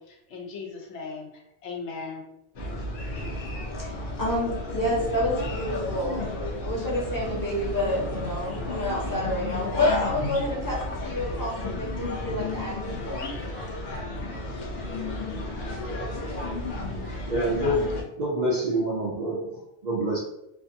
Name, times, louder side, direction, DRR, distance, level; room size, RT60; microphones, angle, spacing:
voice 1, 0.0-2.3, left 4 dB, 85° left, 1 dB, 1.0 m, -38 dB
sound 1, 2.5-18.0, left 2 dB, 55° left, 0.7 m, -32 dB
voice 2, 4.2-6.3 6.6-13.3, left 1 dB, 20° left, -5 dB, 0.7 m, -29 dB
voice 3, 17.2-20.2, right 1 dB, 55° right, -4 dB, 0.5 m, -27 dB
2.5 x 2.4 x 2.6 m, 0.84 s
omnidirectional pair, 1.1 m